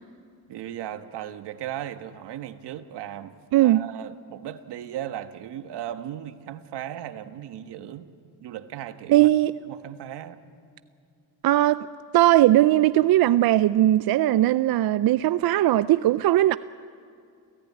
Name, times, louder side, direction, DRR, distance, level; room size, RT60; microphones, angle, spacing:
voice 1, 0.5-8.1 8.4-9.3 9.7-10.4, right 11 dB, 85° right, 1.3 m, -37 dB
voice 2, 3.5-3.8 9.1-9.5 11.4-11.9 12.1-16.6, right 14 dB, 65° right, 0.5 m, -19 dB
29.0 x 15.5 x 9.5 m
cardioid pair, 115°, 40 cm